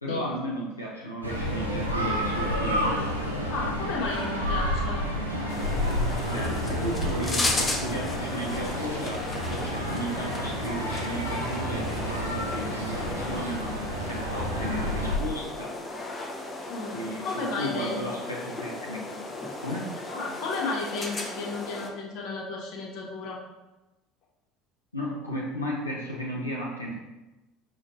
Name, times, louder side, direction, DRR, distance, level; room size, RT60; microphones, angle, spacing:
voice 1, 0.0-3.1 6.2-15.8 16.9-19.2 19.6-19.9 24.9-26.9, equal, 85° left, -5 dB, 0.5 m, -34 dB
sound 1, 1.2-15.2, equal, 90° right, 0.6 m, -30 dB
voice 2, 3.5-5.1 16.7-18.0 20.1-23.4, left 3 dB, 50° left, -1 dB, 0.9 m, -33 dB
sound 2, 5.5-21.9, left 2 dB, 25° left, 0.6 m, -35 dB
6.1 x 3.0 x 2.6 m, 1.0 s
figure-of-eight pair, 65°, 0 cm